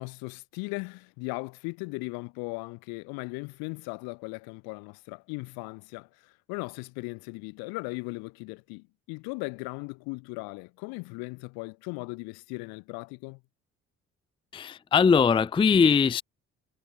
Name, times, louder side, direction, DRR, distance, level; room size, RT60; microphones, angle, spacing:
voice 1, 0.0-13.4, left 30 dB, 70° left, 1.5 m, -38 dB
voice 2, 14.5-16.2, left 6 dB, 15° left, 0.4 m, -21 dB
figure-of-eight pair, 45°, 38 cm